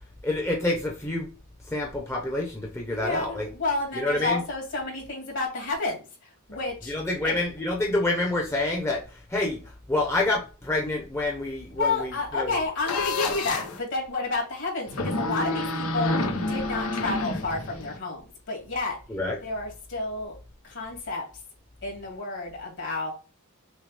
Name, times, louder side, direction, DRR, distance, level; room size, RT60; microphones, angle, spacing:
voice 1, 0.2-1.3 1.7-3.5 3.9-4.4 6.8-9.6 9.9-12.6 19.1-19.4, left 2 dB, 10° left, -1 dB, 0.8 m, -27 dB
voice 2, 2.9-6.9 7.2-7.4 11.7-19.0 19.4-20.4 20.6-21.3 21.8-23.1, left 3 dB, 60° left, -1 dB, 2.3 m, -30 dB
sound 1, 12.9-13.8 14.9-18.0, left 2 dB, 80° left, 0.9 m, -28 dB
6.3 x 2.4 x 3.3 m, 0.33 s
head